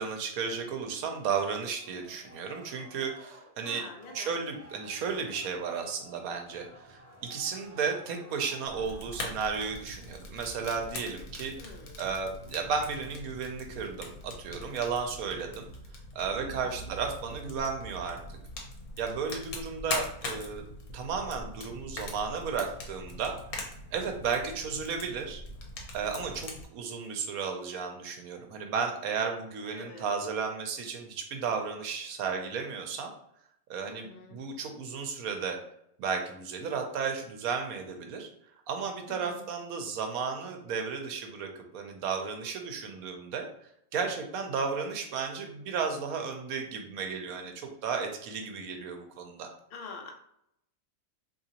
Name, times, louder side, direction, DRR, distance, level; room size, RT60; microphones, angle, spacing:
voice 1, 0.0-3.9 4.1-15.7 16.1-18.2 19.0-20.6 20.9-23.3 23.9-25.4 25.9-33.1 33.7-35.6 36.0-38.3 38.7-43.5 43.9-49.5, right 5 dB, 75° right, 4 dB, 1.1 m, -34 dB
sound 1, 1.8-9.8, right 1 dB, 30° right, 0.8 m, -53 dB
voice 2, 3.6-4.4 11.6-12.0 16.4-16.9 29.7-30.1 33.8-34.4 39.1-39.4 49.7-50.1, left 3 dB, 55° left, 2 dB, 0.7 m, -45 dB
Fire, 8.7-26.6, left 2 dB, 75° left, 1.2 m, -42 dB
3.7 x 2.9 x 2.8 m, 0.74 s
omnidirectional pair, 1.5 m